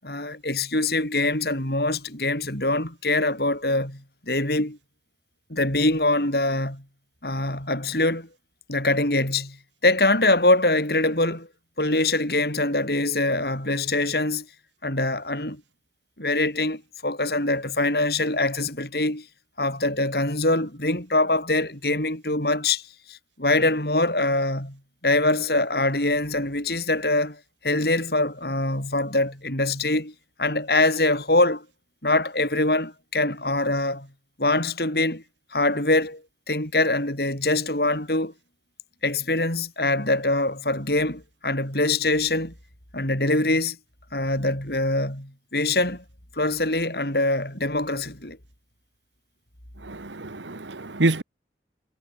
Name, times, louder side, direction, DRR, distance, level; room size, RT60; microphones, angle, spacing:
voice 1, 0.0-4.8 5.5-6.8 7.2-8.3 8.7-9.6 9.8-11.5 11.8-14.5 14.8-15.6 16.2-19.3 19.6-24.8 25.0-30.1 30.4-31.6 32.0-34.1 34.4-35.2 35.5-36.2 36.5-38.3 39.0-42.5 42.9-43.8 44.1-46.0 46.3-48.4, left 2 dB, 60° left, 7.0 m, -24 dB
voice 2, 49.9-51.2, right 2 dB, 90° right, 1.6 m, -26 dB
head